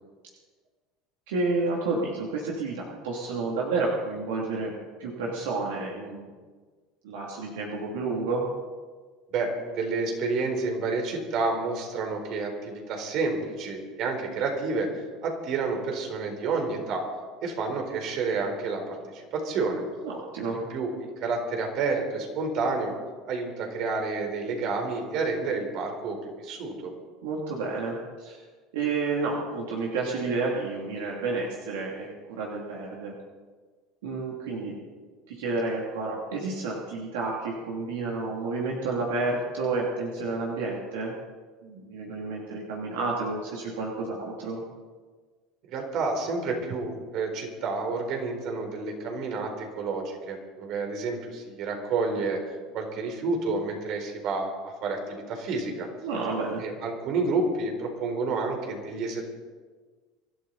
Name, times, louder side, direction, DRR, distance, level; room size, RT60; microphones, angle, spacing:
voice 1, 1.3-4.7 5.0-6.3 7.0-8.5 20.0-20.6 27.2-28.4 28.7-33.1 34.0-34.8 35.3-41.1 41.6-44.6 56.0-56.6, right 3 dB, 85° right, -3 dB, 2.9 m, -30 dB
voice 2, 9.3-14.9 15.2-17.0 17.4-19.8 20.5-23.0 23.3-26.9 45.7-52.4 52.7-55.9 56.6-59.3, right 3 dB, 60° right, 3 dB, 4.2 m, -29 dB
25.0 x 13.0 x 4.2 m, 1.5 s
supercardioid pair, 90°, 0 cm